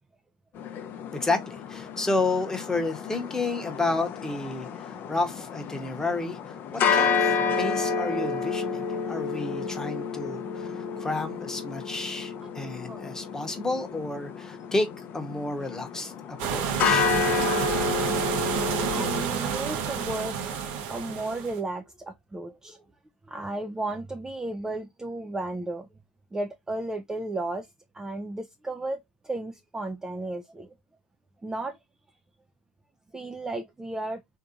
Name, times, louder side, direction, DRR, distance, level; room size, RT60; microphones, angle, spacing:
sound 1, 0.6-19.2, left 5 dB, 40° left, 0.6 m, -30 dB
voice 1, 1.1-14.9 15.1-17.1, left 2 dB, 10° left, 1.0 m, -31 dB
sound 2, 16.4-21.6, right 7 dB, 60° right, 0.9 m, -29 dB
voice 2, 18.5-22.8 23.3-25.9 26.3-27.7 27.9-29.0 29.2-30.7 31.4-31.8 33.1-34.2, right 2 dB, 10° right, 0.5 m, -34 dB
3.4 x 2.8 x 2.5 m
hypercardioid pair, 90°, 5 cm